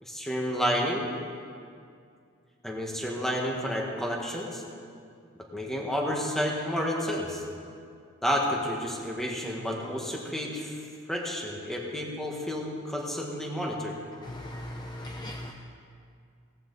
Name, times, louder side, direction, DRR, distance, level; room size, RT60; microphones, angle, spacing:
voice 1, 0.0-1.1 2.6-4.6 5.5-7.4 8.2-10.8 11.1-14.0, equal, ahead, -1 dB, 1.9 m, -30 dB
voice 2, 14.2-15.5, left 1 dB, 20° left, 2 dB, 0.7 m, -38 dB
17.5 x 15.0 x 4.2 m, 2.3 s
head